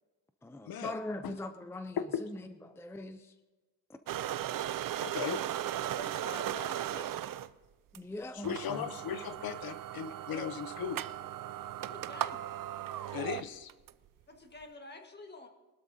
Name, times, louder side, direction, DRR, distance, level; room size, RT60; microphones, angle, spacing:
voice 1, 0.4-3.3 7.9-8.9, left 2 dB, 5° left, 9 dB, 0.5 m, -41 dB
sound 1, 4.1-7.5 7.9-8.0 8.4-13.9, right 12 dB, 65° right, 0.5 m, -37 dB
voice 2, 5.0-5.4 8.3-11.0 13.1-13.7, left 8 dB, 75° left, 12 dB, 0.7 m, -37 dB
voice 3, 6.0-7.2 11.8-12.4 14.3-15.5, left 3 dB, 30° left, 4 dB, 1.6 m, -48 dB
21.5 x 12.5 x 2.7 m, 1.3 s
cardioid pair, 110°, 36 cm